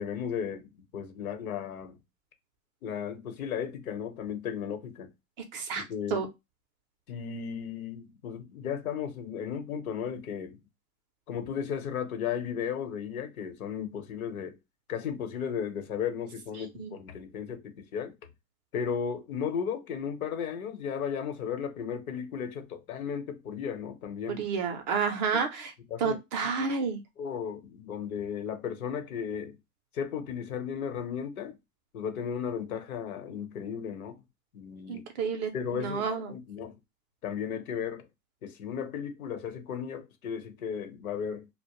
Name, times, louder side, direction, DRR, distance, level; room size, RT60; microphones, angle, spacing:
voice 1, 0.0-2.0 2.8-5.1 5.8-6.2 7.1-10.6 11.3-14.6 14.9-18.1 18.7-24.4 25.9-26.2 26.5-26.8 27.2-29.5 29.9-31.6 31.9-34.2 34.5-35.0 35.5-36.0 36.3-36.8 37.2-38.1 38.4-41.5, left 7 dB, 75° left, 0.9 m, -35 dB
voice 2, 5.5-5.8 6.1-6.3 16.8-16.9 24.3-25.7 26.0-27.0 34.9-36.3, right 5 dB, 35° right, 0.5 m, -30 dB
2.2 x 2.0 x 3.0 m
hypercardioid pair, 125°, 43 cm